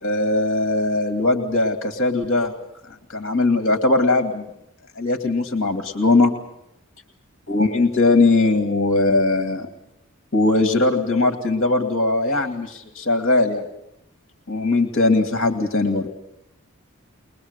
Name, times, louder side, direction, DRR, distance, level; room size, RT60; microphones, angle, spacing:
voice 1, 0.0-2.5 3.1-4.5 5.0-6.3 7.5-9.7 10.3-13.6 14.5-16.1, left 2 dB, 55° left, 6 dB, 2.2 m, -20 dB
22.0 x 21.5 x 8.1 m, 0.80 s
head